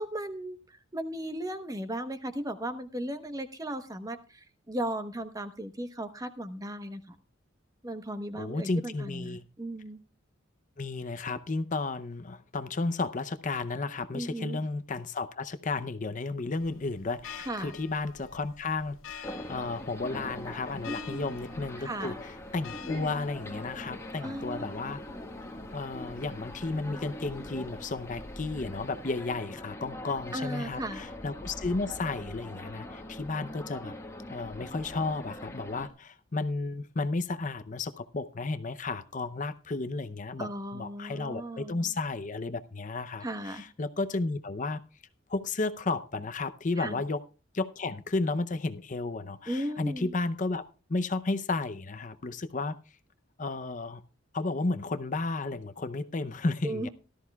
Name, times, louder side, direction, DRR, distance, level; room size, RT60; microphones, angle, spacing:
voice 1, 0.0-7.1 7.8-10.0 14.1-14.6 17.5-17.7 20.8-21.4 21.8-22.2 24.2-24.7 25.1-25.2 30.3-31.0 40.4-41.9 43.2-43.7 46.8-47.0 49.5-50.1 56.6-56.9, right 1 dB, 20° right, 8 dB, 1.0 m, -36 dB
voice 2, 8.3-9.4 10.8-25.0 25.7-33.9 34.3-44.8 45.3-47.2 47.5-50.6 50.9-52.8 53.4-54.0 54.3-56.9, left 3 dB, 40° left, 11 dB, 0.6 m, -33 dB
sound 1, 16.6-29.4, left 6 dB, 80° left, 1.2 m, -50 dB
sound 2, 19.2-35.9, left 1 dB, 15° left, 1.5 m, -42 dB
17.5 x 13.0 x 2.3 m, 0.35 s
head